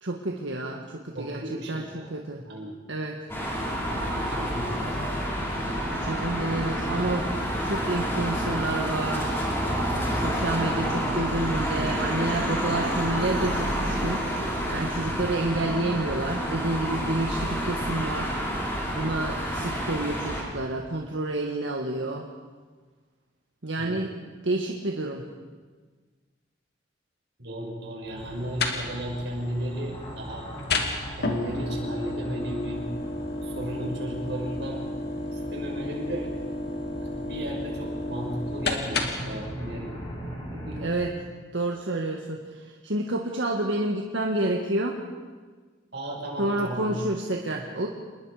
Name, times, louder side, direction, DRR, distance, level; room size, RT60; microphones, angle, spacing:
voice 1, 0.0-2.4 2.9-3.2 5.9-9.5 10.1-14.4 14.7-22.3 23.6-24.1 24.4-25.2 40.8-41.1 41.5-45.0 46.4-47.9, right 2 dB, 90° right, 1 dB, 1.7 m, -29 dB
voice 2, 1.1-2.1 2.4-2.8 3.9-5.0 23.8-24.1 27.4-30.5 31.1-32.8 33.4-34.8 35.5-36.3 37.0-40.0 40.6-40.9 45.9-47.0, right 1 dB, 65° right, -1 dB, 6.1 m, -35 dB
sound 1, 3.3-20.4, equal, 15° left, 5.3 m, -28 dB
sound 2, 28.0-40.9, equal, 30° left, 7.4 m, -41 dB
sound 3, 28.2-39.4, left 2 dB, 60° left, 2.6 m, -33 dB
28.0 x 21.0 x 5.0 m, 1.4 s
head